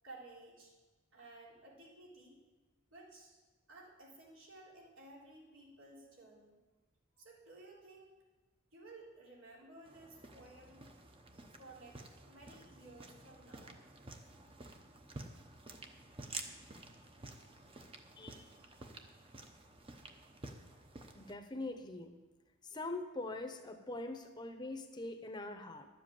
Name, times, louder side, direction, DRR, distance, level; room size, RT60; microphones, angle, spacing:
voice 1, 0.0-0.7 1.1-2.4 2.9-3.4 3.7-6.6 7.2-8.2 8.7-10.9 11.3-12.0 12.3-13.8, right 2 dB, 80° right, -4 dB, 3.5 m, -56 dB
sound 1, 9.8-21.3, right 2 dB, 25° right, 0.8 m, -51 dB
voice 2, 18.2-18.6 20.6-20.7 21.1-22.1 22.6-25.9, left 2 dB, 20° left, 6 dB, 0.8 m, -43 dB
11.5 x 7.7 x 7.5 m, 1.2 s
head